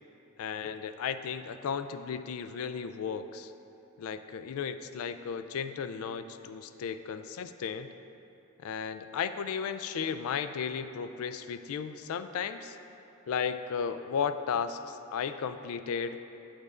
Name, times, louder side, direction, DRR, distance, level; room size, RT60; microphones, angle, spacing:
voice 1, 0.4-3.5 4.0-7.9 8.6-12.8 13.3-16.2, left 6 dB, 80° left, 11 dB, 0.3 m, -34 dB
9.4 x 8.6 x 2.4 m, 2.9 s
head